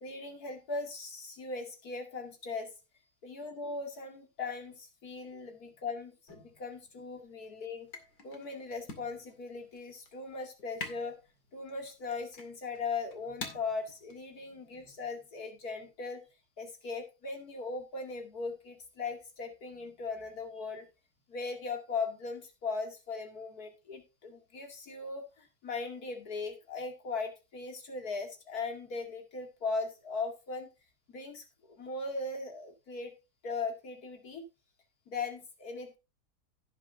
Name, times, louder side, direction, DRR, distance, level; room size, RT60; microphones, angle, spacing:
voice 1, 0.0-2.7 3.2-7.9 8.2-11.2 11.5-16.2 16.6-20.9 21.3-30.7 31.1-33.1 33.4-34.4 35.1-36.0, left 4 dB, 70° left, 4 dB, 2.9 m, -39 dB
sound 1, 6.3-15.1, left 3 dB, 85° left, 2.8 m, -49 dB
17.0 x 7.2 x 2.6 m, 0.28 s
omnidirectional pair, 1.7 m